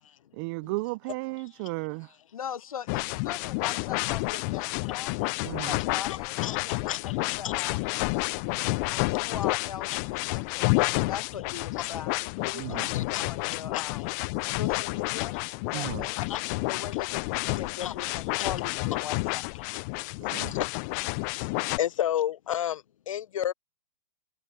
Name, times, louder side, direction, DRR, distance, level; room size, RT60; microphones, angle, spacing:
voice 1, 0.3-2.1 5.4-5.8 12.5-12.9 15.7-16.1 20.3-20.6, right 25 dB, 35° right, 0.7 m, -34 dB
voice 2, 2.3-5.1 5.4-7.8 8.9-10.7 10.9-14.1 14.5-15.4 15.7-16.2 16.7-19.4, left 8 dB, 85° left, 1.1 m, -40 dB
sound 1, 2.9-21.8, left 28 dB, 30° left, 0.4 m, -30 dB
voice 3, 6.1-7.6 8.5-9.2 10.3-10.6 12.9-13.3 13.5-13.8 16.2-17.0 17.8-17.9 18.4-18.5 20.1-20.7 21.3-23.5, left 11 dB, 70° left, 1.0 m, -33 dB
hypercardioid pair, 140°, 18 cm